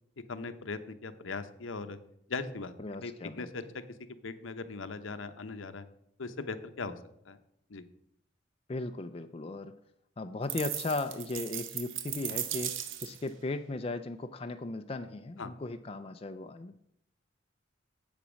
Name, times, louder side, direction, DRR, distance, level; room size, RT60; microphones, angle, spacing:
voice 1, 0.3-2.0 2.3-3.6 4.2-5.8 6.2-7.0 7.2-7.4 7.7-7.8 15.4-15.5, left 4 dB, 80° left, 10 dB, 0.8 m, -39 dB
voice 2, 2.8-3.5 8.7-9.7 10.2-12.8 13.0-16.8, left 2 dB, 30° left, 8 dB, 0.4 m, -37 dB
sound 1, 10.5-13.3, right 10 dB, 80° right, 0.9 m, -37 dB
8.1 x 7.0 x 6.2 m, 0.73 s
head